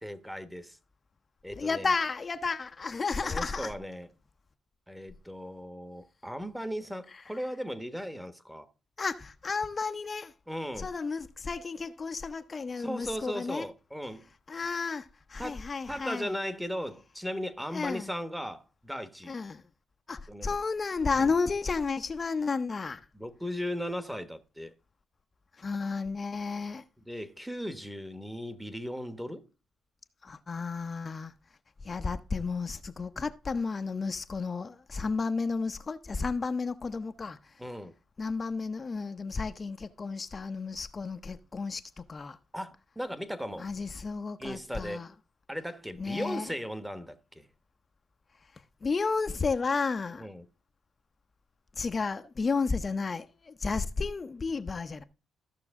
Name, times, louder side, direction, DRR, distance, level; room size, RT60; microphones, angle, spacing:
voice 1, 0.0-0.8 1.4-1.9 3.2-4.1 4.9-8.7 10.5-10.9 12.8-14.3 15.4-15.6 15.9-19.4 20.3-20.5 21.1-21.3 23.1-24.7 27.1-29.5 37.6-37.9 42.5-43.7 44.4-45.1 45.5-47.5 50.2-50.4, equal, 5° right, 1.1 m, -37 dB
voice 2, 1.6-3.7 7.1-7.3 9.0-10.3 10.8-13.7 14.5-16.3 17.7-18.1 19.3-19.6 20.1-23.1 25.5-26.8 30.2-31.3 31.8-37.6 38.2-42.4 43.6-45.1 46.0-46.6 48.4-50.3 51.7-55.0, left 4 dB, 35° left, 0.7 m, -32 dB
14.5 x 6.0 x 3.6 m
cardioid pair, 90°, 0 cm